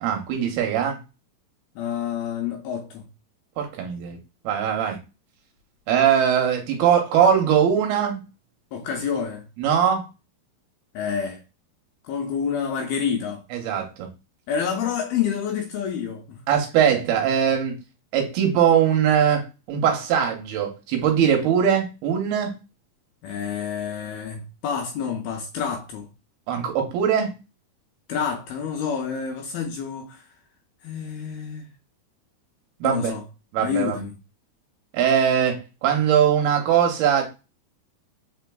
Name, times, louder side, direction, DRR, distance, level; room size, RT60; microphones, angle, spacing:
voice 1, 0.0-1.0 3.6-4.2 4.4-5.0 5.9-8.2 9.6-10.1 13.5-14.1 16.5-17.7 18.1-22.5 26.5-27.3 32.8-33.1 33.5-34.0 34.9-37.3, right 8 dB, 75° right, 2.5 m, -21 dB
voice 2, 1.8-3.1 8.7-9.5 10.9-11.4 12.0-13.4 14.5-16.4 23.2-26.1 28.1-30.2 30.8-31.7 32.8-33.2 33.6-34.2, left 7 dB, 80° left, 2.3 m, -28 dB
5.4 x 4.3 x 2.2 m
omnidirectional pair, 4.9 m